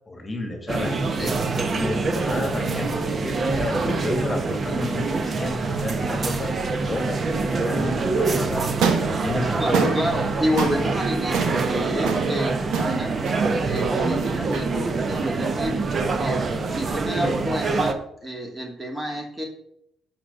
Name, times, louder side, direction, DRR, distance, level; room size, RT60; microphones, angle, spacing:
voice 1, 0.1-1.4 1.7-7.2 7.5-9.9, left 2 dB, 20° left, 3 dB, 2.5 m, -31 dB
sound 1, 0.7-17.9, right 3 dB, 40° right, 1.1 m, -25 dB
voice 2, 1.1-1.4 9.6-13.2 13.6-15.8 16.2-16.4 16.7-19.4, equal, 15° right, 1 dB, 2.5 m, -29 dB
sound 2, 8.8-17.0, right 5 dB, 80° right, 1.5 m, -29 dB
11.5 x 6.1 x 5.6 m, 0.75 s
cardioid pair, 90°, 0 cm